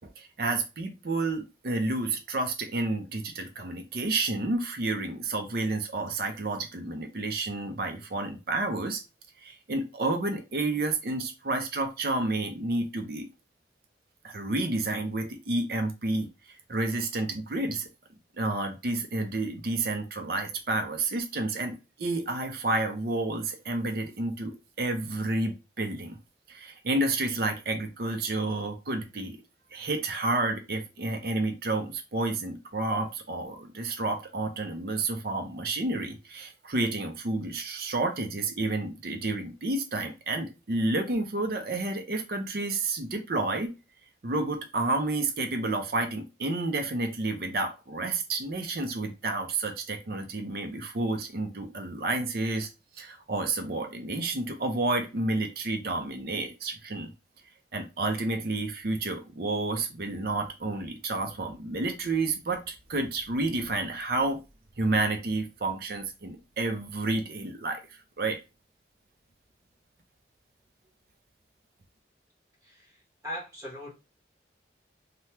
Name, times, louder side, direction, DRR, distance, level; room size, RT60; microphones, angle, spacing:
voice 1, 0.2-9.0 9.4-13.3 14.2-16.3 16.7-17.9 18.4-26.2 26.5-29.4 29.7-43.7 44.2-52.7 53.0-57.1 57.7-64.4 64.8-67.8 68.2-68.4, right 2 dB, 55° right, 5 dB, 0.6 m, -30 dB
voice 2, 72.6-73.9, left 1 dB, 20° right, -3 dB, 0.9 m, -40 dB
3.3 x 2.2 x 2.8 m, 0.29 s
head